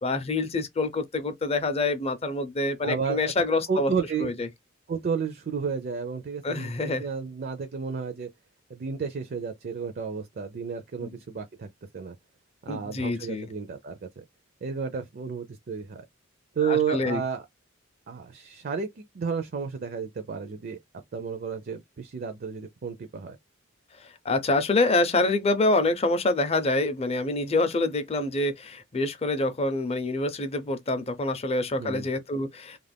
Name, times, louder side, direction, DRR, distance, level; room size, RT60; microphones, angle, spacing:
voice 1, 0.0-3.9 4.2-4.5 6.4-7.0 11.0-11.1 12.7-13.5 16.6-17.2 24.2-32.8, left 2 dB, 30° left, 0.5 m, -26 dB
voice 2, 2.8-4.4 4.9-8.3 8.7-11.7 11.9-12.2 12.7-14.2 14.6-16.0 16.6-17.5 18.1-20.8 21.1-23.4 31.8-32.1, right 6 dB, 45° right, 0.4 m, -32 dB
2.4 x 2.1 x 3.4 m
head